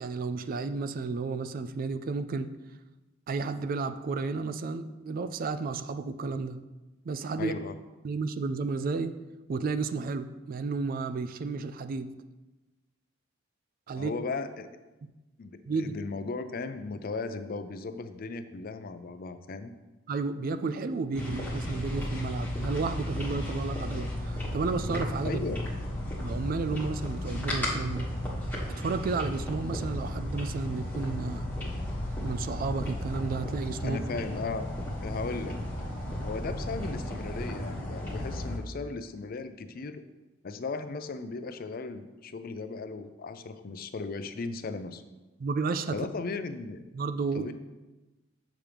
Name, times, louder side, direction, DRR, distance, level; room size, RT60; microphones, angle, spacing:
voice 1, 0.0-2.5 3.3-6.6 7.1-7.5 8.0-9.2 9.5-12.1 13.9-14.1 15.7-16.0 20.1-25.4 26.2-28.1 28.8-31.5 32.2-34.0 45.4-46.0 46.9-47.5, right 4 dB, 45° right, 11 dB, 0.3 m, -32 dB
voice 2, 7.4-7.8 13.9-14.7 15.4-19.7 25.2-25.6 33.8-34.7 35.0-35.6 36.2-40.0 40.4-45.0 45.9-46.8 47.3-47.5, left 3 dB, 50° left, 10 dB, 0.5 m, -36 dB
sound 1, 21.1-38.6, left 1 dB, 10° left, 1.5 m, -34 dB
7.1 x 6.0 x 3.4 m, 1.1 s
head